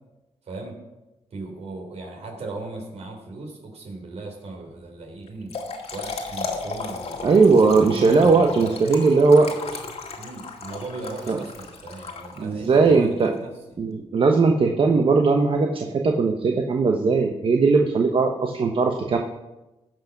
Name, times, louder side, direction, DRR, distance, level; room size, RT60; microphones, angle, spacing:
voice 1, 0.4-0.8 1.3-5.5 5.9-7.3 7.6-8.8 10.2-13.9, right 3 dB, 70° right, 2 dB, 3.4 m, -37 dB
Trickle dribble / Fill (with liquid), 5.3-12.7, left 4 dB, 65° left, 1.9 m, -35 dB
voice 2, 7.2-9.5 11.3-11.4 12.4-13.3 13.8-19.2, right 4 dB, 50° right, 2 dB, 1.1 m, -19 dB
16.0 x 5.9 x 5.9 m, 1.0 s
cardioid pair, 80°, 11 cm